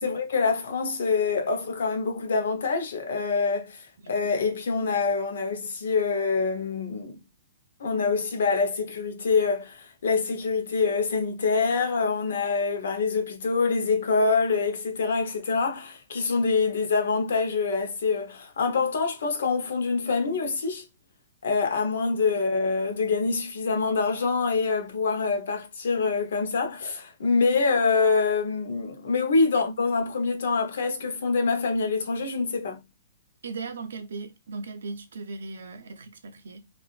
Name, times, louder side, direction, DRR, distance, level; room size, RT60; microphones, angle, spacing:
voice 1, 0.0-7.2 7.8-20.8 21.4-32.8, left 4 dB, 65° left, 1.0 m, -25 dB
voice 2, 33.4-36.7, right 4 dB, 85° right, 0.7 m, -38 dB
3.4 x 2.5 x 2.4 m
hypercardioid pair, 180°, 0 cm